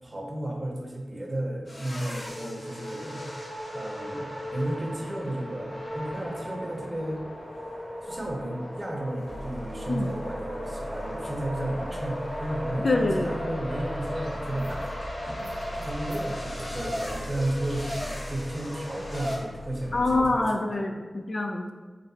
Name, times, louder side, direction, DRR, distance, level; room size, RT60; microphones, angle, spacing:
voice 1, 0.0-3.3 3.7-7.2 8.0-14.9 15.3-15.4 15.8-20.9, right 1 dB, 25° right, -1 dB, 0.7 m, -33 dB
sound 1, 1.7-19.4, equal, 75° left, 1.0 m, -36 dB
sound 2, 9.3-20.3, equal, 10° left, 1.0 m, -41 dB
voice 2, 12.8-13.3 19.9-21.7, left 2 dB, 55° left, 2 dB, 0.3 m, -25 dB
sound 3, 13.6-18.0, equal, 80° right, 1.1 m, -45 dB
3.9 x 3.2 x 2.7 m, 1.4 s
wide cardioid pair, 75°, 0 cm